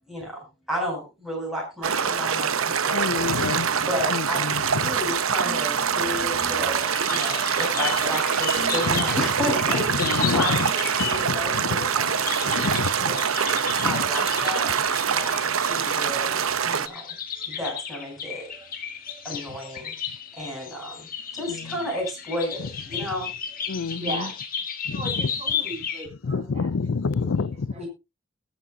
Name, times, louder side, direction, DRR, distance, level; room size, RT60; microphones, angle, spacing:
voice 1, 0.1-3.3 3.8-4.4 4.7-12.7 13.0-13.4 13.8-14.7 15.1-18.7 19.1-19.9 20.3-21.1 21.3-23.3 27.8-27.9, left 1 dB, ahead, 7.5 m, -32 dB
sound 1, 1.8-16.9, right 7 dB, 85° right, 0.8 m, -24 dB
voice 2, 2.9-5.0 8.8-9.2 9.7-10.7 11.0-12.1 12.4-13.2 13.8-14.1 21.5-21.7 22.9-23.1 23.7-24.3 24.9-25.3 26.2-27.7, left 4 dB, 75° left, 0.5 m, -29 dB
sound 2, 3.2-3.6 5.5-6.8 8.6-10.3, left 1 dB, 25° left, 7.2 m, -41 dB
sound 3, 6.7-26.1, left 7 dB, 45° left, 1.8 m, -34 dB
voice 3, 23.9-24.4 24.9-27.9, right 2 dB, 30° right, 2.9 m, -38 dB
20.5 x 7.3 x 2.8 m
head